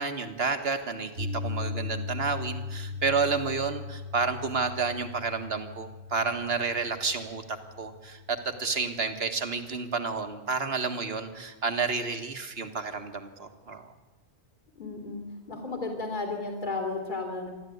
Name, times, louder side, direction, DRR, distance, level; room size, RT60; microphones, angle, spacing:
voice 1, 0.0-7.4 7.8-13.9, right 4 dB, 65° right, 7 dB, 1.9 m, -30 dB
Piano, 1.2-9.3, left 4 dB, 80° right, 2.3 m, -38 dB
voice 2, 14.8-15.2 15.5-17.5, left 3 dB, 45° left, 2 dB, 3.2 m, -33 dB
27.0 x 12.5 x 9.4 m, 1.2 s
omnidirectional pair, 1.1 m